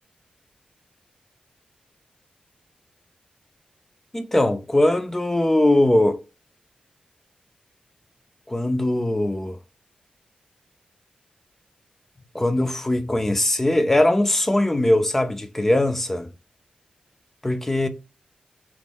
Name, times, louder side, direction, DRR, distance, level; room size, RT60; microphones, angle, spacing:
voice 1, 4.1-6.2 8.5-9.6 12.3-16.3 17.4-17.9, left 1 dB, 15° left, 0.4 m, -20 dB
3.0 x 2.0 x 3.6 m
wide cardioid pair, 140°, 3 cm